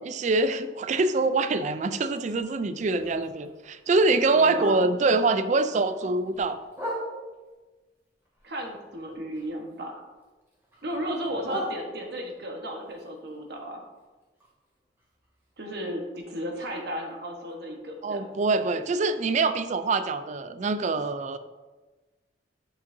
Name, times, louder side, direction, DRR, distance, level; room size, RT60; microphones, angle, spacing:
voice 1, 0.0-6.6 18.0-21.4, right 3 dB, 40° right, 11 dB, 0.4 m, -24 dB
Bark, 2.0-5.2 5.6-7.5 8.0-9.8 10.1-12.4 12.8-16.8 17.1-17.2 17.5-17.9 18.3-18.4 18.8-18.9 19.4-19.5, equal, 10° right, 1.6 m, -41 dB
voice 2, 4.3-4.9 8.4-10.0 10.8-13.8 15.6-18.2, equal, 60° right, 1 dB, 1.2 m, -34 dB
8.3 x 5.6 x 2.7 m, 1.2 s
head